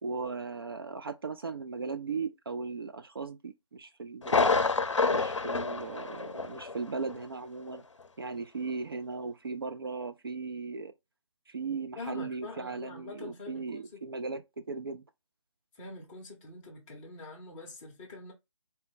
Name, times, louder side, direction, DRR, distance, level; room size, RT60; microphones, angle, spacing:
voice 1, 0.0-4.6 5.1-7.8 8.2-10.9 11.5-15.0, right 4 dB, 50° right, 0.5 m, -37 dB
Thunder, 4.2-6.8 7.1-7.2 7.7-7.8, left 4 dB, 70° left, 0.6 m, -28 dB
voice 2, 12.0-14.0 15.7-18.3, left 3 dB, 10° left, 0.8 m, -45 dB
4.3 x 2.1 x 3.6 m
figure-of-eight pair, 150°, 16 cm